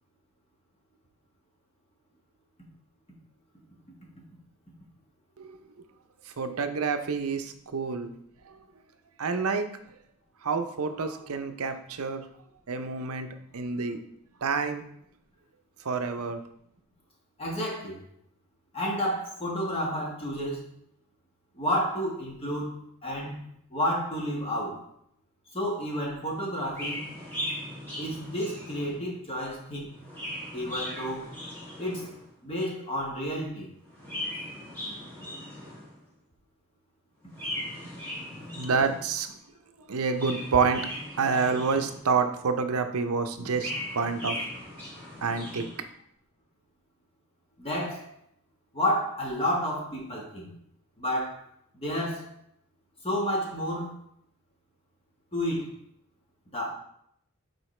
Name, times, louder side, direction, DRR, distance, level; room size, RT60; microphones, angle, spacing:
voice 1, 6.4-8.1 9.2-9.7 10.4-12.2 12.7-14.0 14.4-14.8 15.8-16.4 38.6-39.3 39.9-40.9 41.2-44.4 45.2-45.7, right 5 dB, 80° right, 8 dB, 0.6 m, -28 dB
voice 2, 17.4-18.0 18.7-20.6 21.5-24.8 25.5-27.0 28.0-29.9 30.5-31.3 31.8-32.1 32.4-33.7 47.6-48.1 48.7-50.5 51.0-51.4 51.7-52.3 53.0-53.9 55.3-55.7 56.5-56.7, equal, 25° left, -2 dB, 1.5 m, -30 dB
Chirp tweet, 26.7-29.2 29.9-32.3 33.8-36.0 37.3-39.2 40.0-42.2 43.3-45.8, left 1 dB, 10° left, 2.4 m, -38 dB
7.8 x 4.5 x 3.3 m, 0.71 s
head